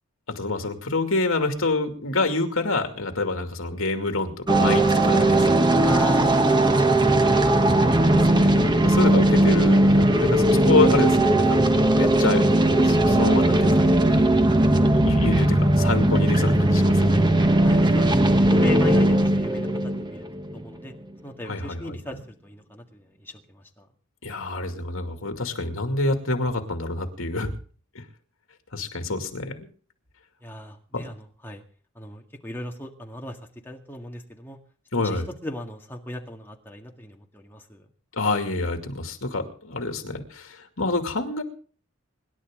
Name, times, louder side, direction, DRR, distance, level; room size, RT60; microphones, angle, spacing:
voice 1, 0.4-5.6 8.1-11.6 11.9-12.4 12.8-14.6 14.9-17.3 21.5-22.2 24.2-27.5 27.9-28.0 28.7-29.7 30.9-31.0 34.9-35.3 38.1-41.4, left 2 dB, 75° left, 5 dB, 2.5 m, -27 dB
sound 1, 4.5-20.8, right 1 dB, 20° right, 1.2 m, -19 dB
voice 2, 5.8-7.9 17.6-19.7 20.0-20.2 20.5-20.9 21.2-23.9 30.4-31.6 32.0-33.4 33.6-34.6 34.9-37.9, left 1 dB, 10° left, 1 dB, 1.9 m, -37 dB
26.0 x 11.5 x 3.8 m, 0.43 s
head